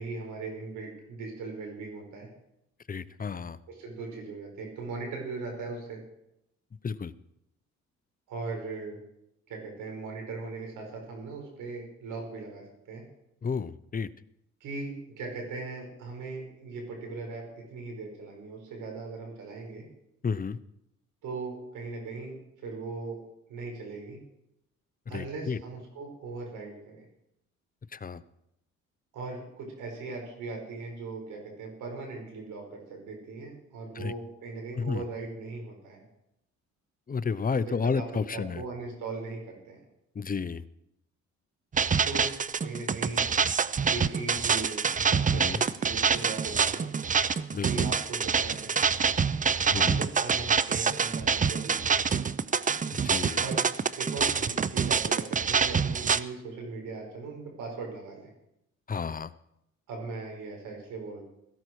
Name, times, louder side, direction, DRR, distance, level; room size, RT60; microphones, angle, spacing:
voice 1, 0.0-2.3 3.7-6.0 8.3-9.0 9.5-13.0 14.6-19.9 21.2-23.2 23.5-24.2 25.1-27.1 29.1-36.1 37.6-39.8 42.0-43.2 43.8-46.9 47.7-48.8 49.6-52.3 53.4-53.6 54.0-58.3 59.9-61.2, right 3 dB, 85° right, 1 dB, 5.5 m, -39 dB
voice 2, 2.9-3.6 6.8-7.1 13.4-14.1 20.2-20.6 25.1-25.6 27.9-28.2 34.0-34.1 34.8-35.0 37.1-38.6 40.2-40.6 45.3-45.6 47.5-47.9 49.7-50.0 52.9-53.4 58.9-59.3, left 5 dB, 30° left, 15 dB, 0.7 m, -31 dB
sound 1, 41.7-56.2, right 6 dB, 25° right, 0.6 m, -26 dB
16.5 x 14.5 x 4.8 m, 0.81 s
cardioid pair, 90°, 30 cm